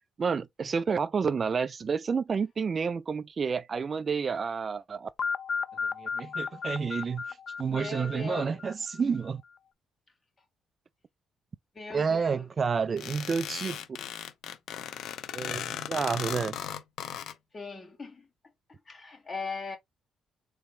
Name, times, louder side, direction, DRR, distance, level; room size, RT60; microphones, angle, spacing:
voice 1, 0.2-5.1 6.0-9.4 11.9-13.8 15.3-16.6, right 5 dB, 40° right, 0.3 m, -30 dB
sound 1, 5.2-9.2, left 5 dB, 50° left, 0.4 m, -34 dB
voice 2, 7.7-8.6 11.7-12.5 17.5-18.3 18.7-19.8, left 4 dB, 30° left, 2.6 m, -39 dB
sound 2, 13.0-17.3, left 10 dB, 80° left, 0.7 m, -37 dB
4.2 x 3.4 x 3.7 m
cardioid pair, 90°, 0 cm